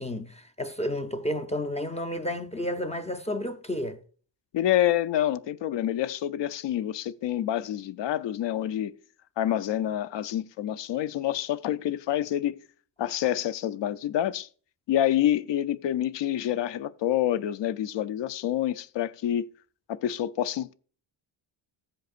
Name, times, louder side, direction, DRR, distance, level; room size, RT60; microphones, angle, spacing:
voice 1, 0.0-4.0, left 1 dB, 15° left, 0.6 m, -31 dB
voice 2, 4.5-9.0 9.4-12.6 13.0-14.5 14.9-19.5 19.9-20.7, left 11 dB, 65° left, 0.6 m, -27 dB
14.5 x 7.8 x 2.5 m
cardioid pair, 135°, 46 cm